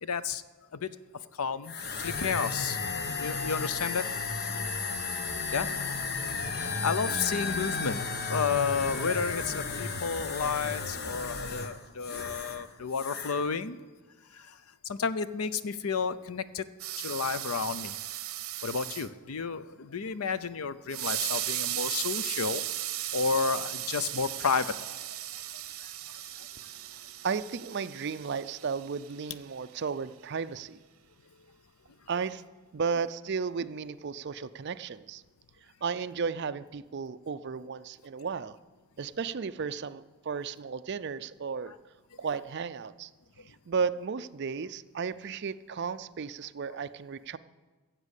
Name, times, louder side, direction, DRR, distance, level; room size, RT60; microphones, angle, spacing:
voice 1, 0.0-0.4 0.7-0.9 1.4-1.7 2.0-2.8 3.2-4.0 4.5-5.0 5.5-5.7 6.5-13.8 14.3-14.6 14.8-16.6 17.0-18.0 18.6-22.6 23.1-24.9 26.4-26.5, left 5 dB, 75° left, 14 dB, 0.6 m, -31 dB
sound 1, 1.6-12.6 12.9-13.4, left 4 dB, 45° left, 1.0 m, -34 dB
sound 2, 16.8-19.1 20.9-29.2, right 13 dB, 65° right, 0.9 m, -36 dB
voice 2, 26.7-30.8 32.1-32.4 32.7-35.2 35.8-38.6 39.0-41.7 42.2-43.1 43.7-47.4, right 5 dB, 50° right, 13 dB, 0.5 m, -34 dB
15.0 x 7.5 x 8.2 m, 1.3 s
head